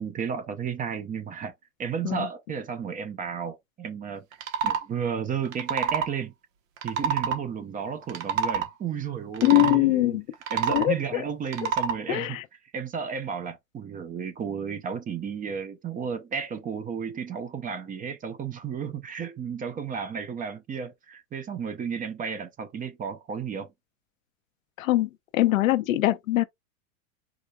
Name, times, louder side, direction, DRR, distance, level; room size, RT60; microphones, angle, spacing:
voice 1, 0.0-1.5 1.8-4.2 4.6-6.3 6.8-10.2 10.5-12.4 12.7-23.7, right 7 dB, 20° right, 0.7 m, -33 dB
sound 1, 4.3-4.8 5.5-6.1 6.8-7.4 8.0-8.7 9.3-9.8 10.3-10.9 11.5-12.0, right 7 dB, 70° right, 1.3 m, -27 dB
voice 2, 9.4-10.2 10.7-11.2 11.6-11.7 12.1-12.4 24.8-26.4, left 16 dB, 75° left, 0.7 m, -23 dB
5.0 x 4.2 x 2.3 m
hypercardioid pair, 120°, 40 cm